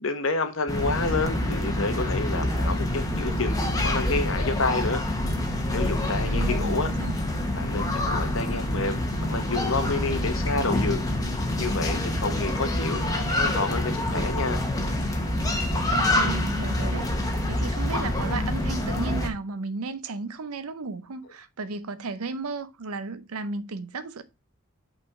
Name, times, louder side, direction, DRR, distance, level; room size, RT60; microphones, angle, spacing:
voice 1, 0.0-5.0 5.7-6.9 7.5-11.0 11.6-14.6, left 3 dB, 65° left, 1.1 m, -29 dB
sound 1, 0.7-19.3, left 1 dB, 15° left, 1.0 m, -26 dB
sound 2, 0.8-3.9, right 1 dB, 40° right, 1.7 m, -45 dB
voice 2, 6.3-7.2 15.9-24.2, right 3 dB, 90° right, 0.7 m, -34 dB
5.6 x 4.2 x 4.7 m
head